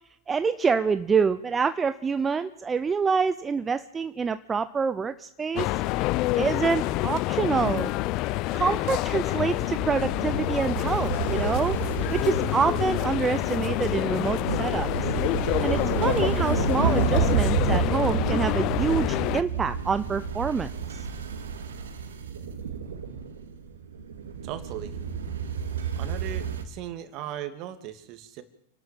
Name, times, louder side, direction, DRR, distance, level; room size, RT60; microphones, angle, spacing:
voice 1, 0.3-5.7 6.4-7.9 8.5-11.8 12.1-14.9 15.6-20.7, right 5 dB, 20° right, 12 dB, 0.8 m, -26 dB
sound 1, 5.6-19.4, left 18 dB, 45° left, 0.7 m, -27 dB
sound 2, 9.1-26.6, right 7 dB, 80° right, 2.6 m, -30 dB
voice 2, 24.4-24.9 26.0-28.4, right 11 dB, 45° right, 10 dB, 2.7 m, -37 dB
28.5 x 12.0 x 7.7 m, 0.74 s
hypercardioid pair, 105°, 0 cm